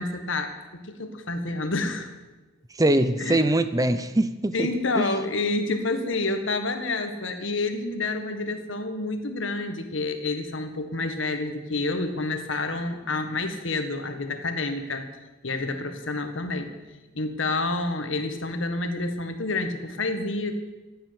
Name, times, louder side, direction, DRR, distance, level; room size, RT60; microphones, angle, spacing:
voice 1, 0.0-2.1 3.2-3.4 4.5-15.1 15.4-16.7 17.2-20.5, left 2 dB, 65° left, 7 dB, 1.7 m, -28 dB
voice 2, 2.8-4.7 5.0-5.1, right 1 dB, 15° right, 12 dB, 0.8 m, -22 dB
15.0 x 9.4 x 9.9 m, 1.1 s
head